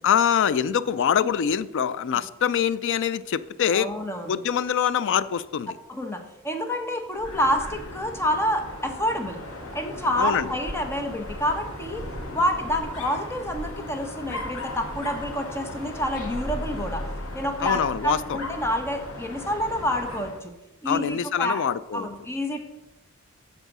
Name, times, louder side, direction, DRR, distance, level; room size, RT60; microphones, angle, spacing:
voice 1, 0.0-3.9 4.3-5.8 10.2-10.5 17.6-18.4 20.9-22.1, left 8 dB, 60° left, 16 dB, 0.4 m, -24 dB
voice 2, 3.7-4.3 5.9-9.4 9.7-12.0 12.3-17.1 17.3-20.5 20.8-21.6 21.9-22.6, equal, 10° left, 5 dB, 0.9 m, -28 dB
Dog, 7.1-20.4, left 1 dB, 85° left, 1.9 m, -36 dB
8.1 x 5.0 x 6.0 m, 0.97 s
head